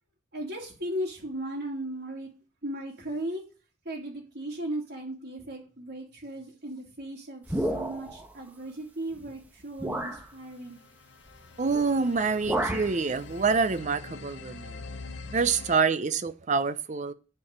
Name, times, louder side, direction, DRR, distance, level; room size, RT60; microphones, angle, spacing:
voice 1, 0.3-2.3 2.6-3.4 3.8-10.8, right 1 dB, 55° right, 2.7 m, -36 dB
sound 1, 7.5-8.3 9.1-9.3 9.8-10.3 11.7-11.9 12.2-13.0, right 1 dB, 10° right, 1.1 m, -31 dB
sound 2, 10.4-15.8, left 3 dB, 60° left, 0.7 m, -44 dB
voice 2, 11.6-14.8 15.3-17.1, right 4 dB, 40° right, 0.6 m, -26 dB
9.8 x 4.6 x 6.7 m
head